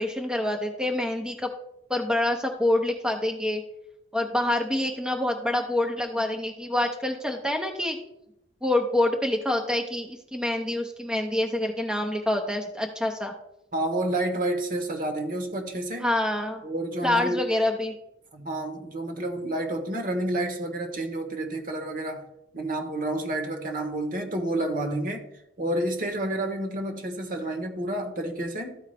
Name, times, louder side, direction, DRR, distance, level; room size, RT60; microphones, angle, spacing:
voice 1, 0.0-1.5 1.9-3.6 4.1-8.0 8.6-13.3 16.0-16.6 17.0-17.9, left 1 dB, 5° right, 0.6 m, -26 dB
voice 2, 13.7-16.1 16.6-17.4 18.3-22.2 22.5-25.3 25.6-28.8, right 1 dB, 50° right, 1.2 m, -29 dB
13.5 x 4.7 x 3.4 m
head